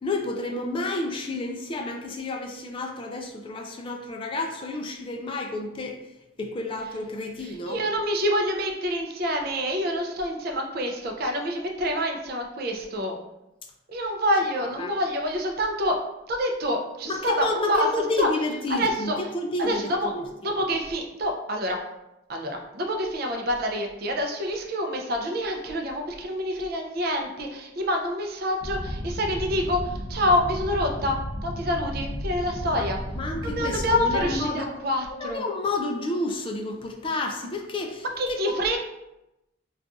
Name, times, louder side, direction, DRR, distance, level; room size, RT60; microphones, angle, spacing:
voice 1, 0.0-6.0 6.4-7.8 14.6-14.9 17.0-20.6 33.2-34.7 35.1-38.6, left 2 dB, 30° left, 3 dB, 0.3 m, -30 dB
voice 2, 7.4-13.2 13.9-16.0 16.3-17.9 18.2-18.3 18.8-19.2 19.6-20.1 20.4-21.8 22.3-33.0 33.4-35.4 38.2-38.8, equal, 55° right, 2 dB, 0.4 m, -27 dB
sound 1, 28.6-34.4, equal, 70° right, 1.0 m, -33 dB
2.4 x 2.4 x 3.9 m, 0.92 s
head